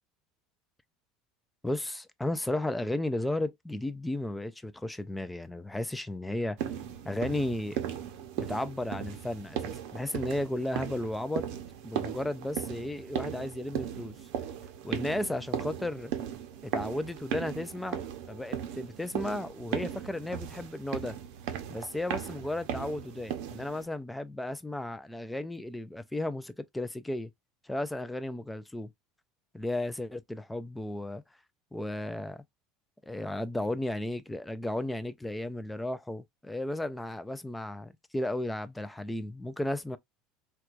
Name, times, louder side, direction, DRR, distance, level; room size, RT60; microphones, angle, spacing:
voice 1, 1.6-6.7 7.1-7.8 8.4-11.5 11.8-14.2 14.8-16.1 16.6-18.0 18.3-21.2 21.7-27.3 27.6-28.9 29.5-31.2 31.7-32.4 33.0-40.0, left 1 dB, 5° left, 0.3 m, -34 dB
sound 1, 6.6-23.8, right 9 dB, 65° right, 0.6 m, -37 dB
4.5 x 2.2 x 2.4 m
cardioid pair, 170°, 0 cm